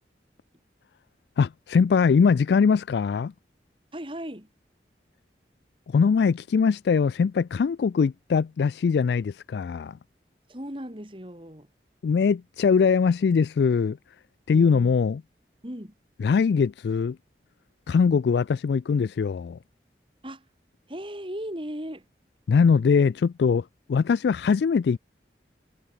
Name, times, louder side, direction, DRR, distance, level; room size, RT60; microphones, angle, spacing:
voice 1, 1.4-3.3 5.9-10.0 12.0-14.0 14.5-15.2 16.2-17.2 17.9-19.6 22.5-25.0, left 5 dB, 70° left, 0.3 m, -22 dB
voice 2, 3.9-4.5 10.5-11.7 14.5-14.9 15.6-15.9 20.2-20.5 20.9-22.0, equal, 30° right, 4.2 m, -37 dB
head